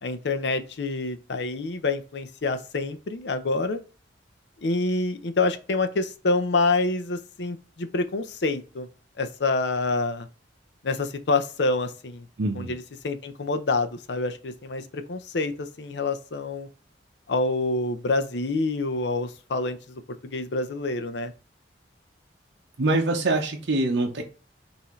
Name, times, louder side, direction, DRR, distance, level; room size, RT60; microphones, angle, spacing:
voice 1, 0.0-3.8 4.6-8.9 9.2-10.3 10.8-12.3 12.5-16.7 17.3-21.3, left 3 dB, 70° left, 0.6 m, -27 dB
voice 2, 12.4-12.7 22.8-24.2, right 2 dB, 75° right, 0.8 m, -24 dB
5.6 x 2.7 x 3.1 m
head